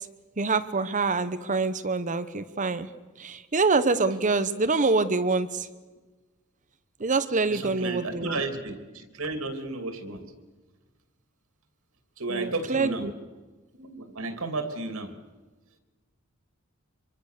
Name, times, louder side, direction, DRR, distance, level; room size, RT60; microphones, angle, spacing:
voice 1, 0.4-2.9 3.2-5.7 7.0-8.4 12.3-13.1, right 3 dB, 35° right, 12 dB, 1.0 m, -25 dB
voice 2, 7.5-10.2 12.2-13.1 13.8-15.1, right 3 dB, 70° right, 7 dB, 3.0 m, -33 dB
26.0 x 24.5 x 6.7 m, 1.3 s
head